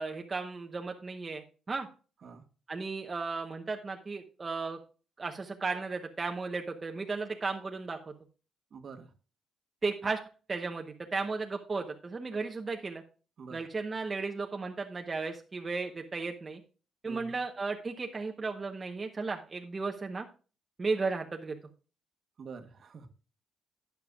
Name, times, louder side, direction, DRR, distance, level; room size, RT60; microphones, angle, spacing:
voice 1, 0.0-1.9 2.7-4.8 5.2-8.0 9.8-10.2 10.5-13.0 13.5-16.6 17.0-20.3 20.8-21.6, right 4 dB, 25° right, 3 dB, 0.9 m, -35 dB
voice 2, 8.7-9.1 13.4-13.7 17.0-17.4 22.4-23.1, right 5 dB, 50° right, 8 dB, 1.3 m, -46 dB
12.0 x 9.2 x 2.3 m, 0.35 s
cardioid pair, 125°, 0 cm